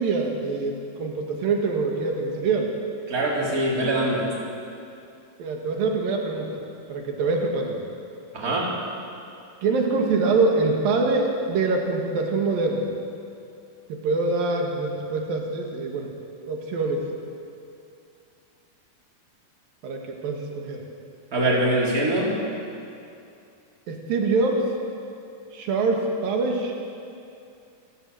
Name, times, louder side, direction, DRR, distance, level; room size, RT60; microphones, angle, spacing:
voice 1, 0.0-2.7 5.4-6.6 6.9-7.9 8.4-8.6 9.6-12.9 13.9-16.1 16.5-17.1 19.8-20.9 23.9-24.7 25.5-26.8, right 3 dB, 85° right, 1 dB, 3.7 m, -24 dB
voice 2, 3.1-4.2 8.3-8.7 21.3-22.4, right 1 dB, 25° right, -4 dB, 4.0 m, -23 dB
27.5 x 13.0 x 7.8 m, 2.6 s
omnidirectional pair, 3.9 m